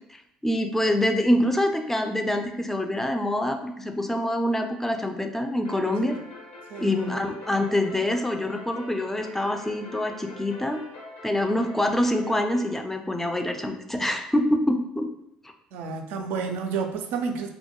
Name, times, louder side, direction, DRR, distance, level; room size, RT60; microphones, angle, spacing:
voice 1, 0.4-6.2 6.8-10.8 11.2-15.1, left 1 dB, 10° left, 5 dB, 0.3 m, -25 dB
sound 1, 5.6-12.7, left 1 dB, 75° left, 0.6 m, -44 dB
voice 2, 6.7-7.1 15.7-17.5, right 5 dB, 65° right, 5 dB, 0.3 m, -30 dB
2.2 x 2.1 x 2.8 m, 0.75 s
hypercardioid pair, 60°, 4 cm